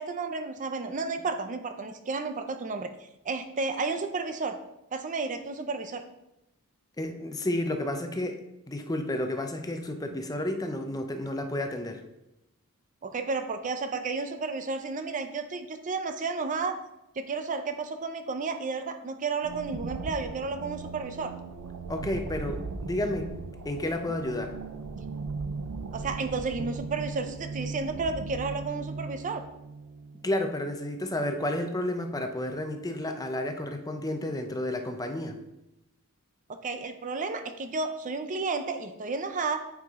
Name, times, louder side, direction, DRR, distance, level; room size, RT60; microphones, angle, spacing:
voice 1, 0.0-2.9 3.2-4.6 4.9-6.0 13.0-16.8 17.2-21.3 25.9-29.4 36.6-39.6, right 4 dB, 35° right, 8 dB, 0.5 m, -32 dB
voice 2, 7.0-12.0 21.9-23.3 23.6-24.5 30.2-35.4, left 1 dB, 15° left, 6 dB, 0.6 m, -31 dB
sound 1, 19.4-30.5, right 4 dB, 80° right, 0.6 m, -38 dB
9.2 x 4.7 x 3.6 m, 0.91 s
head